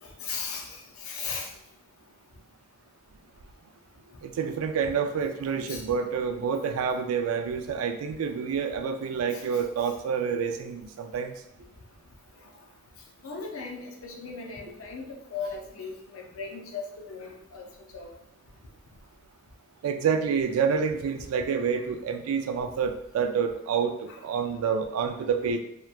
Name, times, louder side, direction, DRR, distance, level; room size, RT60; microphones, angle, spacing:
voice 1, 0.0-1.5 4.8-4.9 5.7-5.8 9.3-9.6 13.2-17.7 17.9-18.1 24.1-24.2, left 5 dB, 75° left, 1 dB, 0.5 m, -37 dB
voice 2, 4.2-11.3 19.8-25.6, right 6 dB, 85° right, 7 dB, 0.3 m, -28 dB
2.9 x 2.2 x 2.3 m, 0.82 s
head